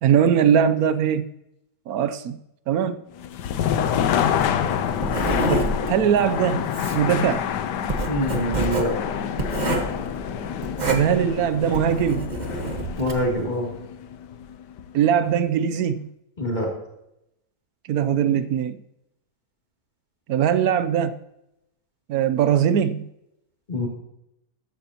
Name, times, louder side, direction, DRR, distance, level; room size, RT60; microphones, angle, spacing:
voice 1, 0.0-1.3 1.9-2.4 2.7-3.0 5.9-7.4 10.8-12.3 14.9-16.1 17.9-18.8 20.3-21.2 22.1-23.1, right 8 dB, 65° right, 1.0 m, -21 dB
sound 1, 3.2-15.0, left 8 dB, 75° left, 1.4 m, -27 dB
Writing, 4.4-13.3, right 2 dB, 25° right, 1.3 m, -28 dB
voice 2, 8.1-8.9 13.0-13.7 16.4-16.7 23.7-23.9, equal, 25° left, 2.7 m, -25 dB
13.5 x 13.0 x 2.9 m
omnidirectional pair, 1.9 m